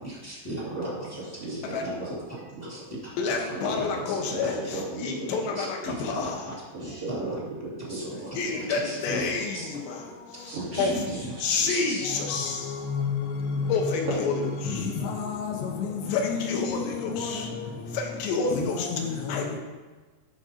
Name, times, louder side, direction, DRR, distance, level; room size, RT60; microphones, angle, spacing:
voice 1, 0.0-0.6 1.1-1.2 1.5-2.1 2.7-4.8 5.5-7.3 7.9-8.0 8.7-9.7 10.5-12.1, right 1 dB, 15° left, -6 dB, 0.6 m, -38 dB
voice 2, 0.6-2.7 3.5-5.7 6.7-8.9 10.5-11.6 13.6-13.7, right 1 dB, 40° right, -10 dB, 3.1 m, -36 dB
voice 3, 3.2-6.4 8.4-11.0 11.4-19.6, left 5 dB, 90° left, 1 dB, 3.4 m, -29 dB
12.0 x 5.1 x 4.2 m, 1.3 s
omnidirectional pair, 4.9 m